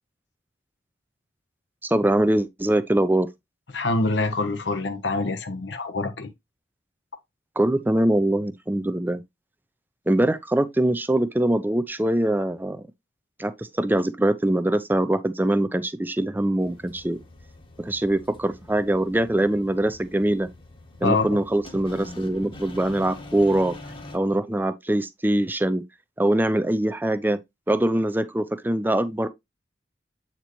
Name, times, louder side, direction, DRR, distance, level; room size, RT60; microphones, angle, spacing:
voice 1, 1.8-3.3 7.6-9.2 10.1-12.9 13.4-17.2 17.8-20.5 21.0-23.8 24.1-25.8 26.2-27.4 27.7-29.3, right 1 dB, 10° right, 0.5 m, -23 dB
voice 2, 3.7-6.3 21.0-21.4, left 3 dB, 85° left, 0.9 m, -25 dB
sound 1, 16.6-24.2, left 1 dB, 30° left, 1.1 m, -44 dB
8.0 x 4.4 x 3.0 m
head